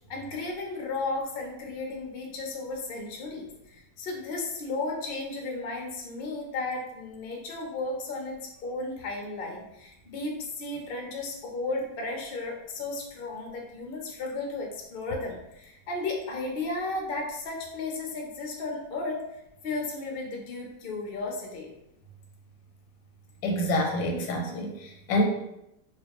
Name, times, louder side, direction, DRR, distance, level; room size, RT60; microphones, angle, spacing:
voice 1, 0.1-19.2 19.6-21.7, left 3 dB, 60° left, -1 dB, 0.5 m, -34 dB
voice 2, 23.4-25.2, left 1 dB, 90° left, 1 dB, 1.4 m, -27 dB
4.0 x 2.5 x 2.9 m, 0.84 s
omnidirectional pair, 1.9 m